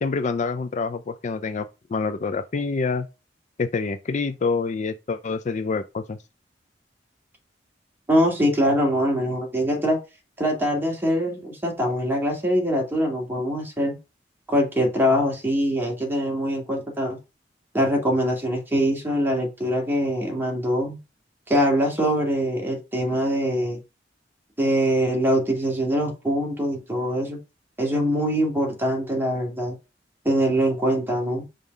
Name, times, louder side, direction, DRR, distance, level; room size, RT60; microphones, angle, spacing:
voice 1, 0.0-3.1 3.6-6.2, left 4 dB, 40° left, 0.4 m, -27 dB
voice 2, 8.1-10.0 10.4-14.0 14.5-17.2 17.7-21.0 21.5-23.8 24.6-27.4 27.8-29.8 30.2-31.4, equal, 10° right, 2.2 m, -23 dB
5.4 x 3.6 x 5.3 m
head